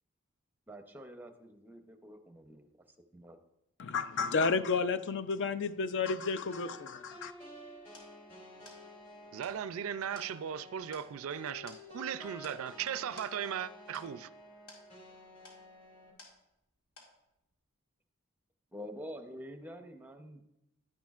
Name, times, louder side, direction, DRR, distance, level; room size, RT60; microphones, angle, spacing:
voice 1, 0.7-2.7 3.1-3.4 18.7-20.4, equal, 10° right, 0.7 m, -47 dB
voice 2, 3.8-7.3, left 4 dB, 55° left, 0.5 m, -31 dB
sound 1, 6.5-16.1, left 1 dB, 35° left, 2.7 m, -52 dB
sound 2, 7.5-16.7 17.0-17.5, left 2 dB, 75° left, 2.3 m, -58 dB
voice 3, 9.3-14.3, right 8 dB, 65° right, 0.3 m, -37 dB
11.0 x 10.5 x 2.4 m
head